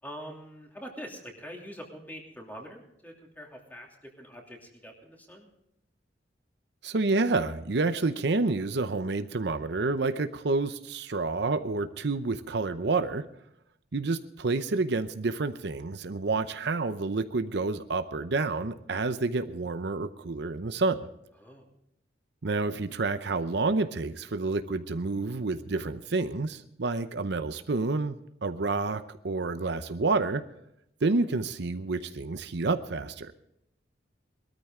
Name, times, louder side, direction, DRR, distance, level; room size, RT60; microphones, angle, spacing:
voice 1, 0.0-5.5 21.4-21.7, equal, 10° left, 0 dB, 2.8 m, -44 dB
voice 2, 6.8-13.2 13.9-21.1 22.4-28.2 28.4-30.4 31.0-33.3, right 3 dB, 65° right, 10 dB, 0.7 m, -29 dB
20.0 x 13.5 x 3.7 m, 0.78 s
head